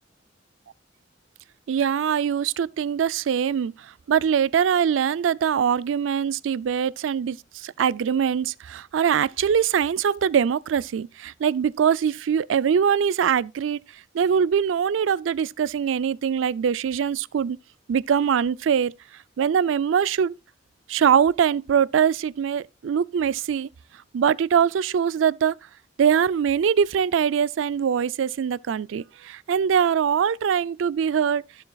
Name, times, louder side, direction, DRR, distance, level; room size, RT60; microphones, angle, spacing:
voice 1, 1.7-3.7 4.1-7.4 7.6-13.8 14.1-17.6 17.9-18.9 19.4-20.3 20.9-23.7 24.1-25.5 26.0-31.4, right 7 dB, 90° right, 0.3 m, -22 dB
14.0 x 7.1 x 2.3 m
head